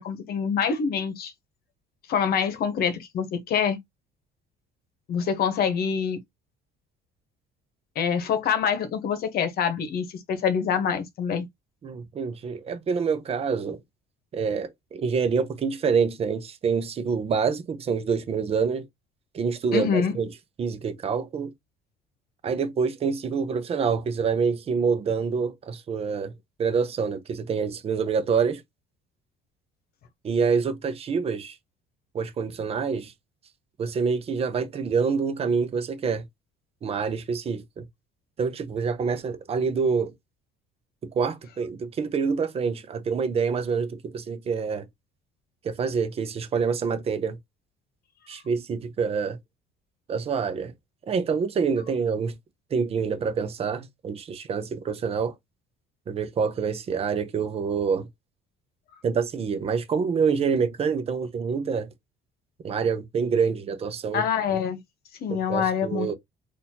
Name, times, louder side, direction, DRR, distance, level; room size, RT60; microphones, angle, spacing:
voice 1, 0.0-1.3 2.1-3.8 5.1-6.2 8.0-11.4 19.7-20.1 64.1-64.8 65.2-66.1, left 7 dB, 55° left, 1.0 m, -25 dB
voice 2, 11.8-13.8 14.3-18.9 19.3-20.3 20.6-21.5 22.4-28.6 30.2-31.6 32.1-33.1 33.8-36.2 36.8-37.9 38.4-40.1 41.0-44.9 45.6-47.4 48.3-49.4 50.1-50.7 51.1-52.4 52.7-55.3 56.1-58.1 59.0-61.9 62.6-64.2 65.3-66.1, right 5 dB, 35° right, 0.7 m, -26 dB
4.0 x 2.6 x 2.8 m
cardioid pair, 140°, 18 cm